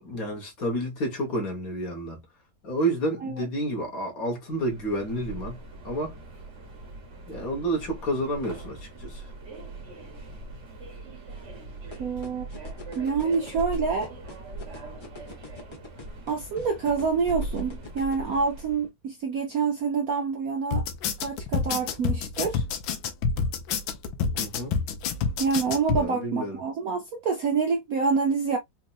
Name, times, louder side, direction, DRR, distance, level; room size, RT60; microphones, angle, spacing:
voice 1, 0.0-2.2 2.6-5.6 5.8-6.2 7.3-9.3 24.4-24.7 25.9-26.6, right 1 dB, 50° left, 1.7 m, -30 dB
Subway metro underground, 4.5-18.9, right 2 dB, 45° right, 1.2 m, -40 dB
sound 1, 11.9-18.1, left 3 dB, 20° left, 0.7 m, -43 dB
voice 2, 12.0-12.5 13.0-14.1 16.3-20.8 21.2-22.6 25.4-28.6, right 5 dB, 65° right, 0.9 m, -27 dB
sound 2, 20.7-26.0, left 5 dB, 80° left, 1.4 m, -27 dB
4.3 x 2.6 x 2.4 m
omnidirectional pair, 2.1 m